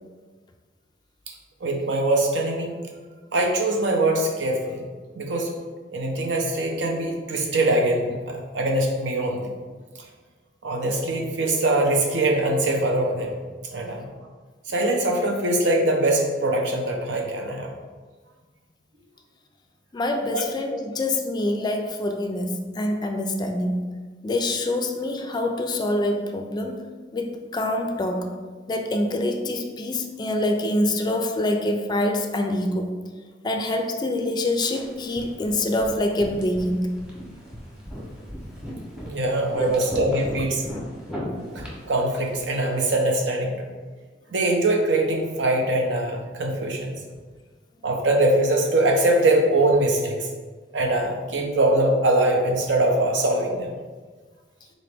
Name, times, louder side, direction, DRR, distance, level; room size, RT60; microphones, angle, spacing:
voice 1, 1.6-2.7 3.3-4.8 5.1-5.5 5.9-9.5 10.6-13.3 13.7-14.1 14.7-17.7 20.3-20.4 39.1-40.6 41.5-43.6 44.3-47.0 47.8-50.3 50.7-53.7, right 1 dB, 80° right, 1 dB, 0.6 m, -22 dB
voice 2, 19.9-23.9 24.2-26.8 27.1-28.3 28.7-32.9 33.4-36.9 39.6-39.9, left 1 dB, 25° left, 5 dB, 0.3 m, -25 dB
sound 1, 34.6-42.8, equal, 5° right, 0.9 m, -38 dB
4.0 x 2.9 x 3.3 m, 1.4 s
head